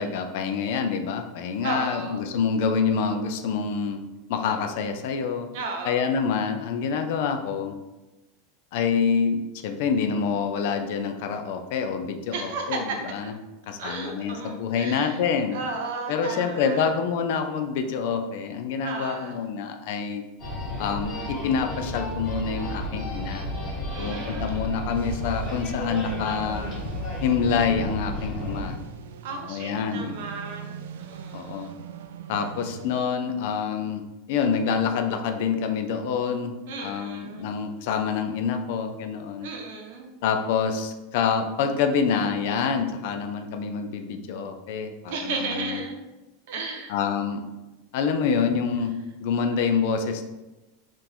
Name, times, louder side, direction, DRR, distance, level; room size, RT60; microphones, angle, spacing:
voice 1, 0.0-4.0 4.3-5.5 5.8-7.7 8.7-13.3 13.7-15.6 16.1-20.2 20.8-23.5 24.0-26.7 27.2-28.8 29.3-30.1 31.3-31.7 32.3-36.5 36.8-39.5 40.2-45.8 46.9-47.4 47.9-48.9 49.2-50.2, left 6 dB, 50° left, 6 dB, 0.4 m, -27 dB
voice 2, 1.6-2.2 5.5-6.1 12.3-13.0 13.8-15.2 15.5-16.9 18.8-19.4 23.9-24.7 29.2-31.8 36.7-37.5 39.4-40.1 45.1-46.0 46.5-46.9, right 3 dB, 55° right, 2 dB, 0.8 m, -34 dB
sound 1, 20.4-28.7, left 1 dB, 15° left, 1.5 m, -32 dB
sound 2, 24.9-32.9, right 8 dB, 85° right, 0.3 m, -41 dB
3.6 x 2.5 x 4.4 m, 1.1 s
supercardioid pair, 175°, 0 cm